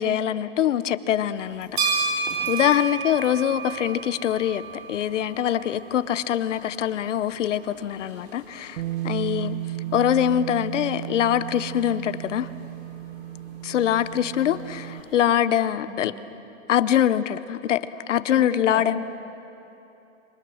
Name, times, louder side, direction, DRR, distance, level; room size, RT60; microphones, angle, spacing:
voice 1, 0.0-2.2 2.5-4.6 4.9-9.6 9.9-12.5 13.6-16.1 16.7-17.8 18.1-19.0, left 10 dB, 65° left, 13 dB, 0.9 m, -24 dB
sound 1, 1.4-15.2, right 5 dB, 50° right, 5.1 m, -35 dB
Bass guitar, 8.8-15.0, right 15 dB, 85° right, 0.7 m, -34 dB
voice 2, 15.9-16.4 18.3-19.0, right 1 dB, 5° right, 3 dB, 0.9 m, -37 dB
27.0 x 24.5 x 6.3 m, 2.9 s
hypercardioid pair, 175°, 40 cm